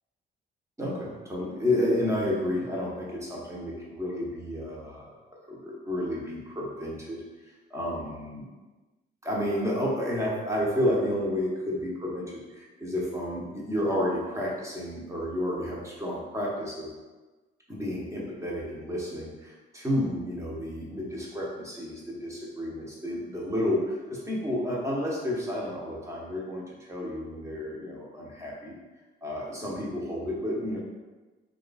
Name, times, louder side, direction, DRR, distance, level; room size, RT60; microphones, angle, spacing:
voice 1, 0.8-5.1 5.5-8.5 9.2-16.9 17.7-28.7 29.2-30.8, left 1 dB, 15° right, -4 dB, 1.0 m, -31 dB
2.8 x 2.4 x 4.0 m, 1.2 s
cardioid pair, 90°, 20 cm